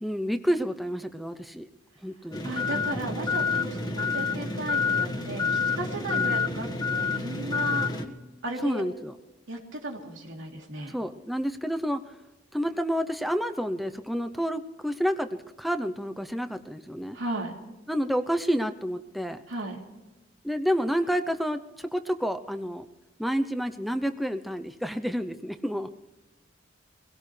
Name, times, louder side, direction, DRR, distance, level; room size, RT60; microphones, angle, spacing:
voice 1, 0.0-1.7 2.0-2.4 6.1-6.3 8.6-9.1 10.9-12.2 12.5-17.2 17.9-19.4 20.4-22.9 23.2-25.9, equal, ahead, 8 dB, 0.6 m, -29 dB
sound 1, 2.3-8.1, left 5 dB, 20° left, 1.5 m, -28 dB
voice 2, 2.4-7.9 8.4-8.8 9.5-10.9 17.1-17.5 19.5-19.8, right 2 dB, 90° right, 0 dB, 3.1 m, -35 dB
22.5 x 17.0 x 3.3 m, 1.1 s
head